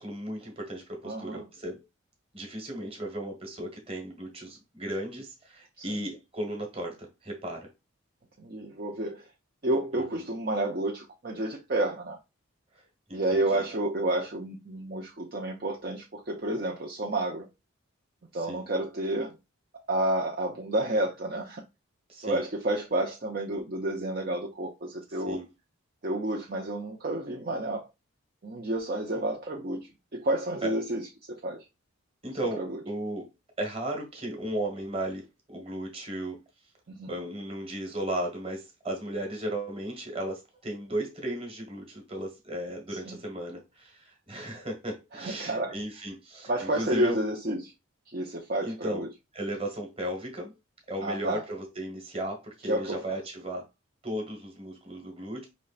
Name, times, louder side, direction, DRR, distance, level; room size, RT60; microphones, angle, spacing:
voice 1, 0.0-1.8 2.3-7.7 9.9-10.3 13.1-13.7 18.3-18.6 22.1-22.4 25.1-25.5 30.6-30.7 32.2-33.3 33.6-36.4 37.1-47.2 48.6-49.0 49.3-50.5 50.9-53.6 54.0-55.5, right 1 dB, 25° right, 1.4 m, -35 dB
voice 2, 1.0-1.4 5.8-6.0 8.4-9.3 9.6-12.2 13.1-17.5 18.3-19.4 19.9-21.6 22.2-25.4 26.0-27.9 28.4-31.6 32.6-32.8 36.9-37.1 43.1-43.2 45.1-45.8 46.5-47.7 48.1-49.1 51.0-51.4 52.7-53.2, right 1 dB, 45° right, 0.6 m, -30 dB
5.2 x 3.1 x 2.5 m
head